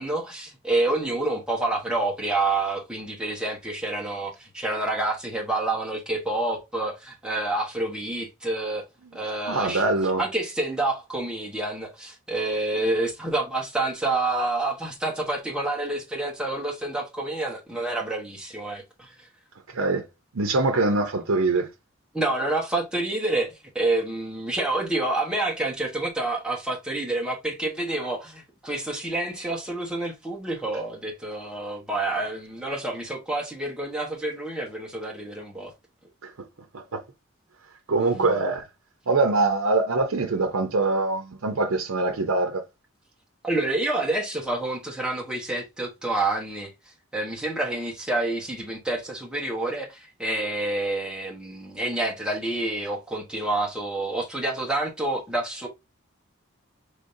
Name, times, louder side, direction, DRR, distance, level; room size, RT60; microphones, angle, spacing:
voice 1, 0.0-8.8 9.1-9.8 10.2-19.1 22.1-35.7 38.1-38.3 43.4-46.7 47.1-55.7, right 2 dB, 5° right, 1.2 m, -28 dB
voice 2, 9.5-10.2 19.7-20.0 20.3-21.7 36.2-36.5 36.7-37.0 37.9-38.7 39.1-42.6, right 3 dB, 85° right, 0.7 m, -23 dB
5.0 x 3.4 x 2.6 m
head